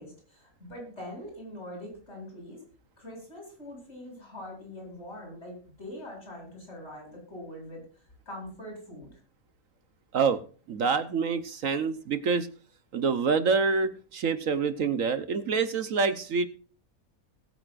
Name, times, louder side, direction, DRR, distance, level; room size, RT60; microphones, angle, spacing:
voice 1, 0.0-2.6 3.0-7.8 8.3-9.2, left 1 dB, 50° left, 1 dB, 8.4 m, -43 dB
voice 2, 10.7-12.5 12.9-16.5, right 5 dB, 65° right, 11 dB, 1.3 m, -26 dB
21.0 x 9.3 x 2.5 m, 0.39 s
omnidirectional pair, 1.6 m